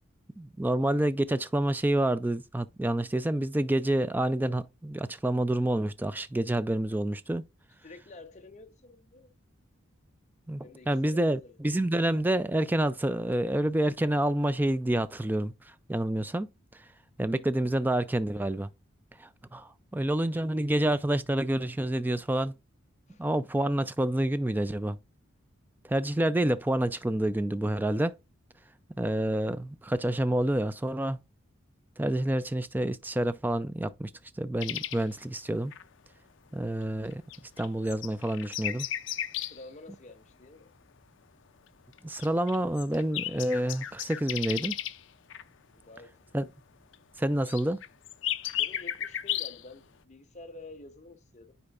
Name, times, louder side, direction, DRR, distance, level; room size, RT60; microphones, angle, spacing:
voice 1, 0.4-7.4 10.5-16.5 16.7-16.8 17.2-18.7 19.2-22.6 23.2-25.0 25.8-28.2 29.0-31.2 32.0-34.1 34.4-35.7 36.5-38.9 42.0-44.8 46.3-46.5 47.2-47.8, right 1 dB, 10° right, 0.3 m, -28 dB
voice 2, 7.8-9.3 10.6-11.6 23.1-23.2 39.5-40.7 45.7-46.3 48.4-51.5, left 3 dB, 35° left, 0.8 m, -49 dB
sound 1, 34.6-35.1 35.7-35.8 36.8-39.6 41.9-45.0 45.3-45.4 46.9-49.6, left 12 dB, 60° left, 0.5 m, -34 dB
9.7 x 4.4 x 2.4 m
head